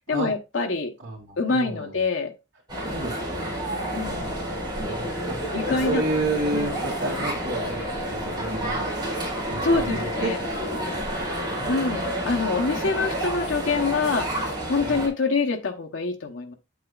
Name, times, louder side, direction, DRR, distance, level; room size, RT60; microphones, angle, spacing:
voice 1, 0.1-0.9 1.4-2.3 3.9-4.4 5.5-6.0 6.5-6.8 9.6-10.4 11.7-16.5, left 3 dB, 90° left, 3 dB, 1.0 m, -26 dB
voice 2, 1.0-2.0 2.8-3.5 4.0-8.9 9.5-12.2 14.8-15.0, right 2 dB, 65° right, -5 dB, 2.8 m, -32 dB
sound 1, 2.7-15.1, equal, 25° right, 5.0 m, -29 dB
8.5 x 8.0 x 2.4 m, 0.26 s
head